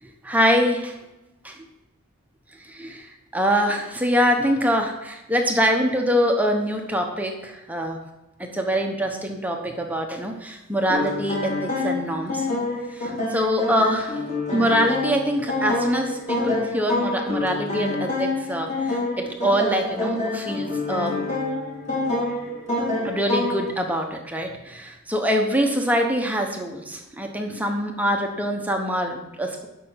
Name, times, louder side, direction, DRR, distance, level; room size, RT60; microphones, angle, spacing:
voice 1, 0.2-1.0 2.7-3.1 3.3-8.0 8.4-12.5 13.0-14.1 14.5-21.2 23.0-29.7, equal, 5° right, 2 dB, 1.0 m, -24 dB
sound 1, 10.9-23.7, left 2 dB, 30° left, 3.4 m, -27 dB
11.5 x 6.4 x 5.7 m, 0.99 s
head